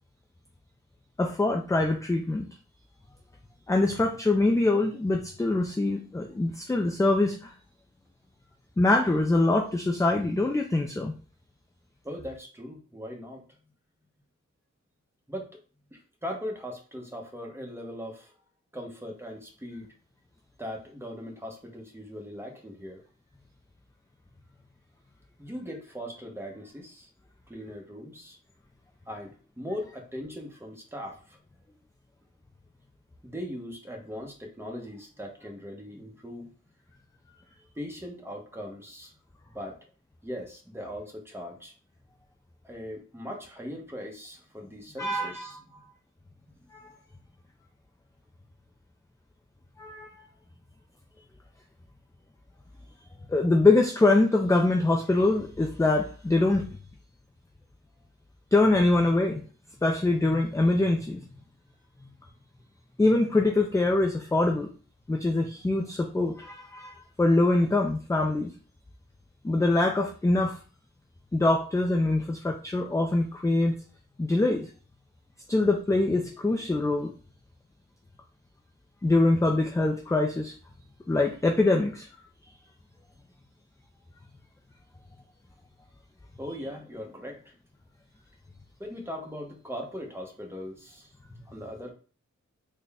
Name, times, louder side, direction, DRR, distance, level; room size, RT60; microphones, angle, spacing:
voice 1, 1.2-2.5 3.7-7.5 8.8-11.1 45.0-45.6 46.7-46.9 49.8-50.1 53.3-56.7 58.5-59.4 59.8-61.2 63.0-64.7 65.1-68.5 69.4-70.6 71.3-73.8 74.2-74.7 75.5-77.1 79.0-80.5 81.1-82.1, left 2 dB, 10° left, 2 dB, 0.3 m, -24 dB
voice 2, 12.0-13.4 15.3-15.6 15.9-18.3 18.7-19.9 20.6-23.0 25.4-27.1 27.5-28.4 29.1-31.4 33.2-36.5 37.7-39.1 39.5-39.8 40.2-41.7 42.6-45.8 51.2-51.3 86.4-87.5 88.8-91.1 91.5-91.9, equal, 10° right, 1 dB, 0.9 m, -39 dB
3.8 x 2.2 x 3.4 m, 0.38 s
wide cardioid pair, 100°, 30 cm